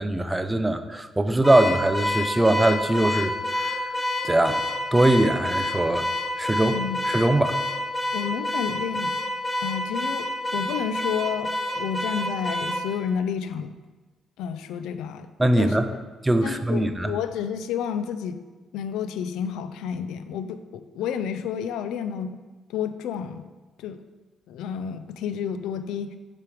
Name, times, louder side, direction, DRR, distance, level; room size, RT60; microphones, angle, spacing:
voice 1, 0.0-3.8 4.2-4.6 4.9-6.1 6.4-7.6 15.4-15.9 16.2-17.1, right 1 dB, 15° right, 9 dB, 0.4 m, -22 dB
Car / Alarm, 1.4-12.9, left 1 dB, 5° left, 0.9 m, -28 dB
voice 2, 8.1-9.1 9.6-13.7 14.4-15.3 15.6-15.8 16.4-18.4 18.7-22.4 22.7-23.5 23.8-24.0 24.5-26.2, left 8 dB, 90° left, 11 dB, 0.3 m, -30 dB
6.7 x 3.4 x 4.7 m, 1.3 s
cardioid pair, 90°, 0 cm